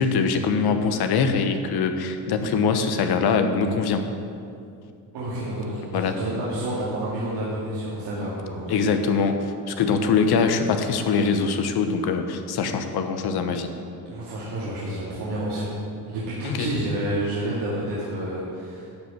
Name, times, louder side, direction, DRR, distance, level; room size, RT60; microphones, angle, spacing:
voice 1, 0.0-4.0 5.9-6.2 8.7-13.7 16.4-16.7, left 5 dB, 60° left, 7 dB, 1.1 m, -23 dB
voice 2, 5.1-9.0 14.1-15.8 16.0-18.9, right 1 dB, 70° right, -8 dB, 2.5 m, -29 dB
12.0 x 5.1 x 6.8 m, 2.5 s
supercardioid pair, 70°, 43 cm